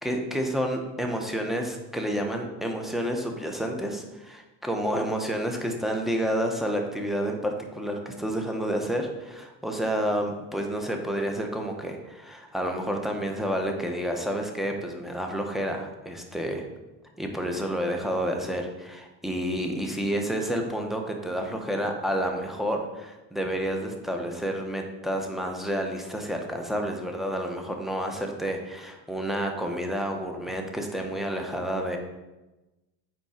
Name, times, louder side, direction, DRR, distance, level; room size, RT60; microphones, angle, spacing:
voice 1, 0.0-16.6 17.2-32.0, equal, ahead, 2 dB, 1.1 m, -30 dB
8.5 x 4.4 x 5.1 m, 1.1 s
cardioid pair, 105°, 42 cm